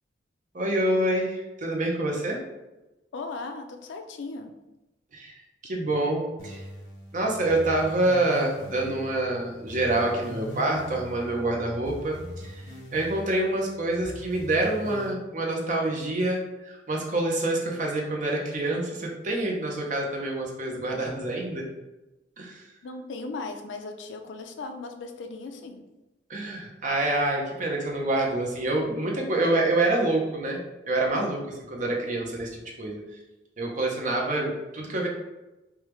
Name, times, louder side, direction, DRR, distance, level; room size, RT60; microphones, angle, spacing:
voice 1, 0.5-2.4 5.1-6.6 7.1-12.6 12.9-21.7 22.4-22.6 26.3-30.6 30.9-33.0 33.6-35.1, right 2 dB, 40° right, -1 dB, 0.6 m, -27 dB
voice 2, 3.1-4.5 22.8-25.8, left 3 dB, 70° left, 6 dB, 0.4 m, -37 dB
sound 1, 6.4-15.1, equal, 90° left, 0.8 m, -42 dB
3.4 x 2.3 x 3.0 m, 1.0 s
head